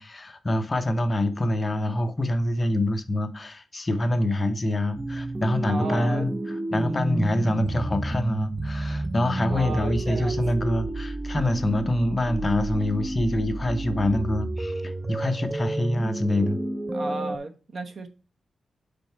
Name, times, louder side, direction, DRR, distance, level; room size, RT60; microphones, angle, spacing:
voice 1, 0.0-6.3 6.7-16.6, left 1 dB, 25° left, 0.7 m, -25 dB
sound 1, 5.0-17.4, right 2 dB, 15° right, 0.4 m, -30 dB
voice 2, 5.7-6.3 9.5-10.4 16.9-18.1, right 2 dB, 55° right, 1.0 m, -34 dB
5.2 x 4.4 x 4.4 m
wide cardioid pair, 120°, 0 cm